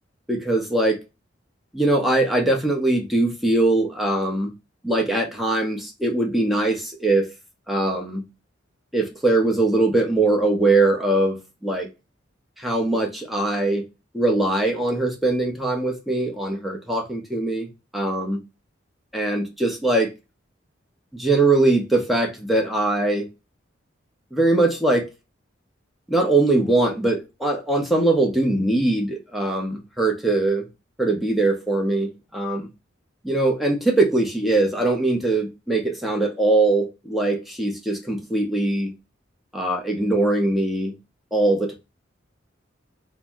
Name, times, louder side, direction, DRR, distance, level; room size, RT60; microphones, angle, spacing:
voice 1, 0.3-1.0 1.7-4.5 4.8-7.3 7.7-8.2 8.9-11.9 12.6-13.8 14.1-18.4 19.1-20.1 21.1-23.3 24.3-25.1 26.1-30.7 31.0-32.7 33.2-38.9 39.5-40.9 41.3-41.7, right 2 dB, ahead, 0.6 m, -21 dB
2.7 x 2.0 x 3.3 m
head